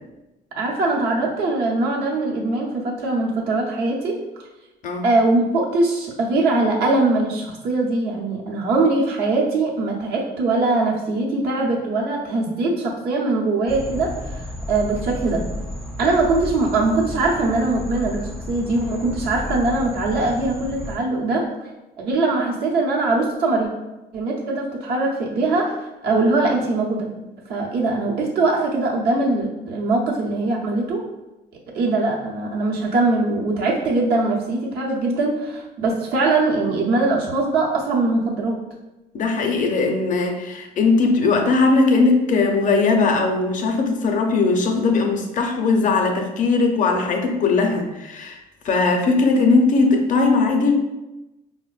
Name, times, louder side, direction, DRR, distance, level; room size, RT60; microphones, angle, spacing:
voice 1, 0.6-4.2 5.0-15.5 16.0-21.4 22.0-23.7 24.1-27.1 27.5-31.0 31.7-38.6, right 2 dB, 70° right, -3 dB, 0.8 m, -21 dB
sound 1, 13.7-21.0, left 1 dB, ahead, 0.4 m, -32 dB
voice 2, 39.1-48.4 48.6-50.8, left 3 dB, 50° left, 3 dB, 0.5 m, -19 dB
4.3 x 2.1 x 2.3 m, 1.0 s
cardioid pair, 110°, 17 cm